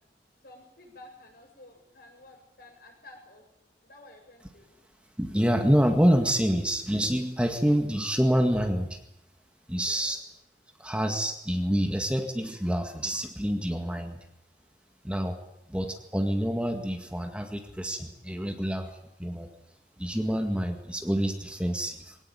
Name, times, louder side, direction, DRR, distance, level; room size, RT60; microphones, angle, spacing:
voice 1, 0.4-3.5 3.8-4.7 9.8-10.1, left 2 dB, 60° left, 3 dB, 7.8 m, -52 dB
voice 2, 5.2-9.0 9.7-10.2 10.8-14.2 15.0-15.4 15.7-19.5 20.0-22.2, equal, 5° right, 5 dB, 1.9 m, -27 dB
22.5 x 18.5 x 9.2 m, 0.81 s
head